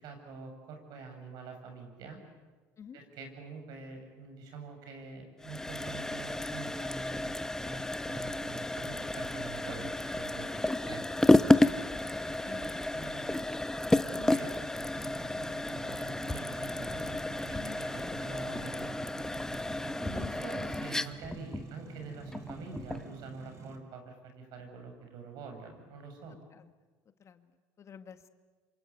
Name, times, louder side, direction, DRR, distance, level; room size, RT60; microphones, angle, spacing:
voice 1, 0.0-2.2 2.9-11.0 12.3-13.5 14.1-14.9 15.2-17.1 17.5-18.9 20.0-26.4, right 4 dB, 65° right, 5 dB, 7.4 m, -46 dB
sound 1, 5.4-23.1, left 1 dB, 5° left, 1.0 m, -31 dB
sound 2, 15.0-23.8, right 5 dB, 40° right, 4.4 m, -47 dB
voice 2, 26.3-26.7 27.2-28.3, left 7 dB, 40° left, 9 dB, 1.7 m, -51 dB
27.0 x 26.0 x 8.5 m, 1.3 s
supercardioid pair, 95°, 8 cm